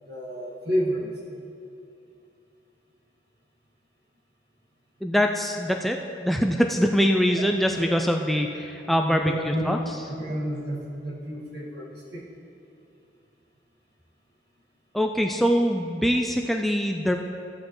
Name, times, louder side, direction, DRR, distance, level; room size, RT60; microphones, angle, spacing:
voice 1, 0.1-1.4 9.1-9.6 10.2-12.2, equal, 65° right, -5 dB, 2.0 m, -30 dB
voice 2, 5.0-9.8 14.9-17.1, equal, ahead, 3 dB, 0.3 m, -23 dB
14.5 x 8.5 x 3.1 m, 2.7 s
head